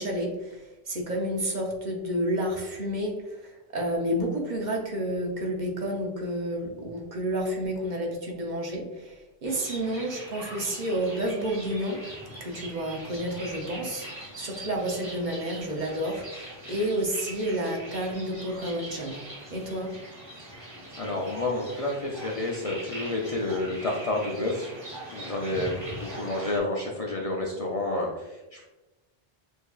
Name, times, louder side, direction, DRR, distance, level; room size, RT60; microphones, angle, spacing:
voice 1, 0.0-12.0 12.4-19.2 19.5-19.9, right 1 dB, 50° right, 0 dB, 0.8 m, -30 dB
sound 1, 9.4-26.6, right 1 dB, 25° right, 1.2 m, -42 dB
voice 2, 21.0-24.7 25.1-28.6, left 2 dB, 45° left, -2 dB, 0.5 m, -30 dB
6.4 x 2.6 x 2.3 m, 1.1 s
omnidirectional pair, 1.0 m